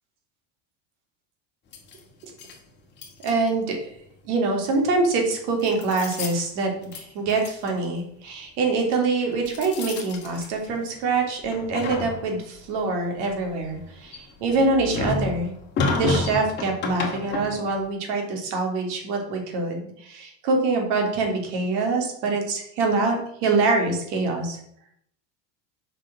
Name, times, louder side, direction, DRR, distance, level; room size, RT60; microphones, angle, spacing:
sound 1, 1.7-2.6 3.0-3.7 4.9-5.1 5.6-6.5 6.8-7.0 7.3-7.7 9.2-11.0 11.4-12.6 13.2-17.8, left 3 dB, 30° left, 2.0 m, -31 dB
voice 1, 3.2-3.8 4.2-15.5 15.9-24.6, right 3 dB, 70° right, 2 dB, 3.0 m, -25 dB
7.7 x 5.9 x 6.2 m, 0.70 s
cardioid pair, 155°, 36 cm